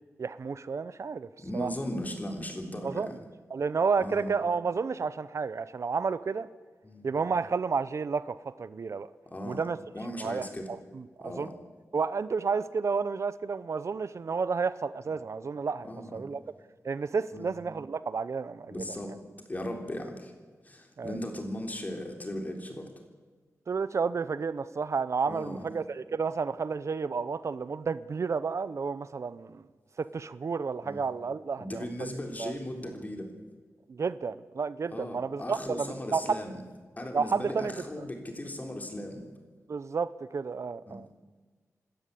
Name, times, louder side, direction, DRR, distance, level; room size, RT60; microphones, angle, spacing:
voice 1, 0.2-1.7 2.8-3.1 3.5-6.5 7.0-9.1 9.4-9.8 10.2-11.5 11.9-16.4 16.8-18.9 21.0-21.2 23.7-29.6 30.0-32.1 32.4-32.5 33.9-36.4 37.1-37.7 39.7-41.1, right 5 dB, 60° right, 0.6 m, -31 dB
voice 2, 1.4-3.2 4.0-4.3 6.8-7.0 9.3-9.7 9.9-10.7 11.2-11.5 15.8-16.2 17.3-17.5 18.7-19.2 19.5-20.3 20.6-22.9 25.2-25.7 30.8-31.0 31.6-33.3 34.9-36.6 37.0-39.3 40.9-41.0, left 1 dB, 30° left, 3.7 m, -37 dB
26.5 x 13.0 x 8.4 m
wide cardioid pair, 95°, 6 cm